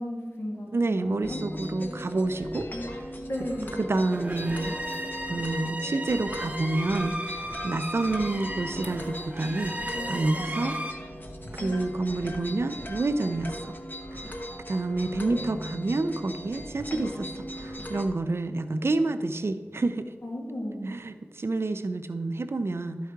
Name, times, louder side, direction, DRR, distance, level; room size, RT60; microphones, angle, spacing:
voice 1, 0.0-1.9 3.3-3.9 20.2-20.9, left 1 dB, 80° left, -3 dB, 1.8 m, -35 dB
voice 2, 0.7-3.1 3.8-4.7 5.3-10.8 11.5-13.8 14.1-14.4 14.7-20.1 20.8-23.0, right 2 dB, 75° right, 9 dB, 0.5 m, -29 dB
sound 1, 1.2-18.1, equal, 50° left, 0.9 m, -38 dB
sound 2, 3.9-10.9, equal, 35° right, 0.9 m, -35 dB
11.5 x 4.7 x 4.6 m, 1.4 s
wide cardioid pair, 55°, 4 cm